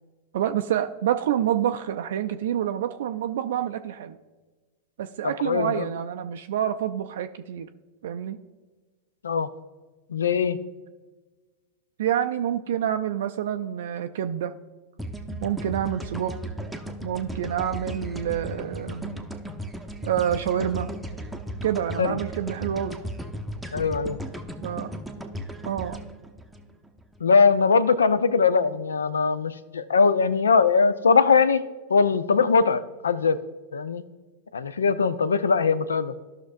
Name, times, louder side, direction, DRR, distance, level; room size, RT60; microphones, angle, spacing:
voice 1, 0.3-4.2 5.0-7.7 8.0-8.4 12.0-14.5 15.4-16.3 17.0-19.2 20.0-20.9 21.6-23.0 24.6-24.9 25.6-26.0, right 10 dB, 60° right, 7 dB, 0.4 m, -27 dB
voice 2, 5.2-5.9 9.2-9.5 10.1-10.6 22.0-22.2 23.7-24.2 27.2-31.6 31.9-33.4 33.7-34.0 34.5-36.1, left 5 dB, 70° left, 16 dB, 0.4 m, -21 dB
sound 1, 15.0-27.2, right 1 dB, 5° right, 0.7 m, -36 dB
14.5 x 5.9 x 2.5 m, 1.3 s
figure-of-eight pair, 90°, 0 cm